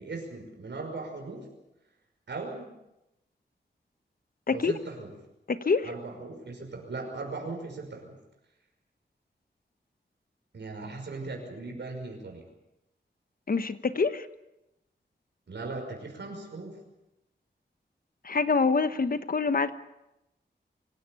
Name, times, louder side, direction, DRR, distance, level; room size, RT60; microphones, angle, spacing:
voice 1, 0.0-1.5 2.3-2.7 4.5-5.1 5.8-8.2 10.5-12.5 15.5-16.8, right 3 dB, 75° right, 2 dB, 5.7 m, -38 dB
voice 2, 5.5-5.9 13.5-14.3 18.2-19.7, left 4 dB, 50° left, 12 dB, 1.2 m, -26 dB
25.0 x 16.5 x 8.4 m, 0.89 s
wide cardioid pair, 115°, 19 cm